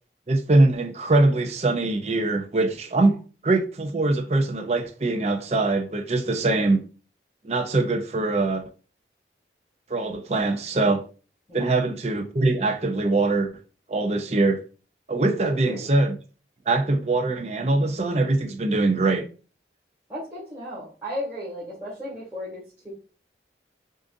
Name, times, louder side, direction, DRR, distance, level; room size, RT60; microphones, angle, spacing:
voice 1, 0.3-3.1 3.4-6.8 7.4-8.6 9.9-11.0 11.5-13.5 13.9-14.6 15.1-16.2 16.7-19.3, right 2 dB, 40° right, 0.6 m, -22 dB
voice 2, 15.4-15.9 20.1-22.9, equal, 10° right, 1.7 m, -34 dB
6.2 x 2.6 x 2.6 m
head